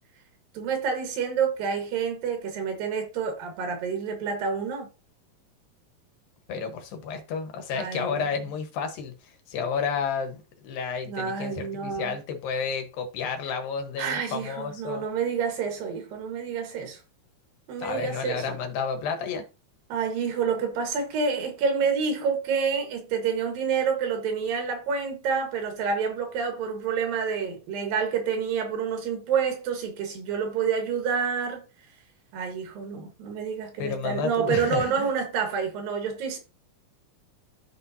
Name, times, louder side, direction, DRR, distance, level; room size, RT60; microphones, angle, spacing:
voice 1, 0.5-4.9 7.7-8.3 11.1-12.2 14.0-17.0 17.7-18.6 19.9-31.6 32.3-36.4, right 6 dB, 80° right, 3.3 m, -28 dB
voice 2, 6.5-9.1 9.5-15.0 17.8-19.4 33.8-35.1, left 5 dB, 85° left, 3.0 m, -31 dB
13.0 x 4.4 x 2.7 m
omnidirectional pair, 4.0 m